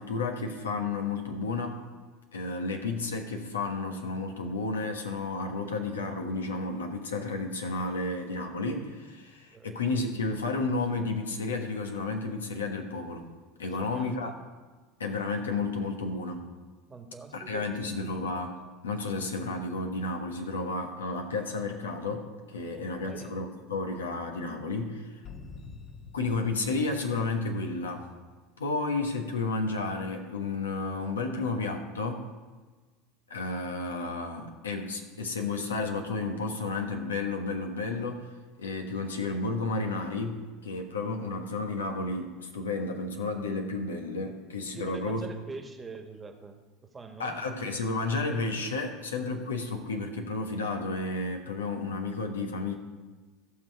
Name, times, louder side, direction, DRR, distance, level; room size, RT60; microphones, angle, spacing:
voice 1, 0.0-1.8 2.3-13.3 13.6-14.3 15.0-16.4 17.3-18.6 18.8-25.1 26.1-28.1 28.6-32.2 33.3-38.3 38.6-45.2 47.2-52.7, left 3 dB, 85° left, 4 dB, 1.2 m, -32 dB
voice 2, 13.7-14.3 16.9-18.0 22.7-23.4 44.7-47.4, right 4 dB, 20° right, 5 dB, 1.4 m, -44 dB
sound 1, 25.2-28.0, left 4 dB, 45° left, 1.2 m, -47 dB
15.0 x 6.1 x 4.6 m, 1.3 s
hypercardioid pair, 80°, 0 cm